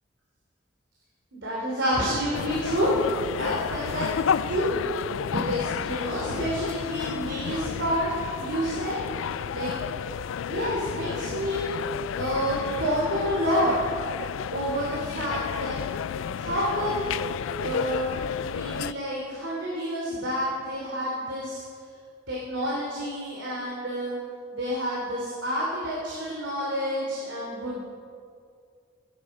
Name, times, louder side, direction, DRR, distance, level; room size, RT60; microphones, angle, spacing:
voice 1, 1.3-3.1 3.4-4.1 4.5-4.8 5.3-8.1 8.4-9.0 9.5-9.7 10.4-11.7 12.1-13.7 14.5-15.8 16.3-17.1 17.6-21.6 22.3-24.2 24.5-27.8, equal, 75° right, -5 dB, 3.1 m, -28 dB
sound 1, 2.3-18.9, left 7 dB, 85° left, 0.3 m, -32 dB
16.0 x 11.0 x 5.4 m, 2.3 s
head